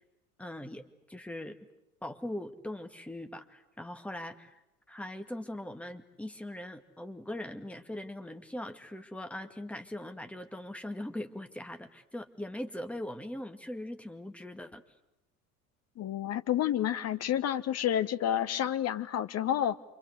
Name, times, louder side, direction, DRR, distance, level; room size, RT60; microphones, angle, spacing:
voice 1, 0.4-1.6 2.0-4.6 4.9-14.8, left 1 dB, 5° left, 6 dB, 2.1 m, -41 dB
voice 2, 16.0-19.8, left 11 dB, 35° left, 12 dB, 1.4 m, -29 dB
28.0 x 25.5 x 8.2 m, 0.88 s
figure-of-eight pair, 70°, 44 cm